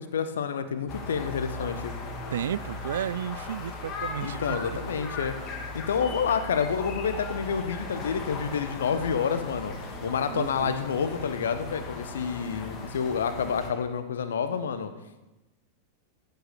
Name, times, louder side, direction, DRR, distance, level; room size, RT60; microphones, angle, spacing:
voice 1, 0.0-1.9 4.2-5.3 5.7-9.7 10.0-14.9, left 6 dB, 65° left, 10 dB, 1.2 m, -29 dB
sound 1, 0.9-13.7, left 3 dB, 30° left, 2.7 m, -37 dB
voice 2, 2.3-4.5 4.7-4.8 10.3-10.8, right 10 dB, 65° right, 19 dB, 0.4 m, -33 dB
14.5 x 9.3 x 6.8 m, 1.0 s
figure-of-eight pair, 90°, 0 cm